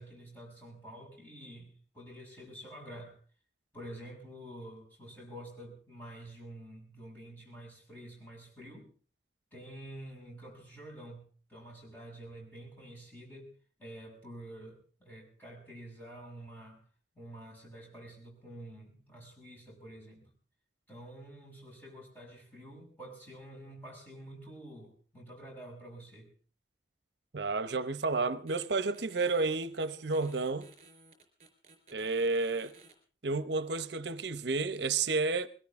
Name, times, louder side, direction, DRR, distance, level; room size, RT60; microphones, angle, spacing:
voice 1, 0.0-3.2 3.7-8.9 9.5-11.2 11.5-13.5 13.8-16.8 17.1-20.3 20.9-26.3, right 1 dB, 10° left, 6.6 m, -48 dB
voice 2, 27.3-30.7 31.9-32.7 33.2-35.5, right 3 dB, 75° right, 0.8 m, -31 dB
sound 1, 28.5-28.7 28.9-32.9, right 3 dB, 35° right, 3.9 m, -57 dB
22.0 x 17.0 x 3.6 m
head